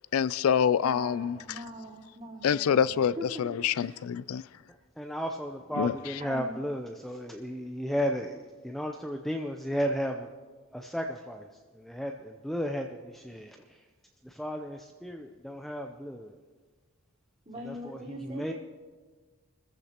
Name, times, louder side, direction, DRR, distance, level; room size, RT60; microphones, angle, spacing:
voice 1, 0.1-1.4 2.4-4.4 5.8-5.9, left 8 dB, 80° left, 0.4 m, -26 dB
voice 2, 0.8-3.4 3.8-4.0 6.2-6.6 17.5-18.5, equal, 30° right, 3.9 m, -42 dB
voice 3, 5.0-10.3 10.7-11.5 11.7-13.8 14.2-16.4 17.6-18.5, equal, ahead, 0.5 m, -34 dB
25.5 x 14.5 x 2.9 m
head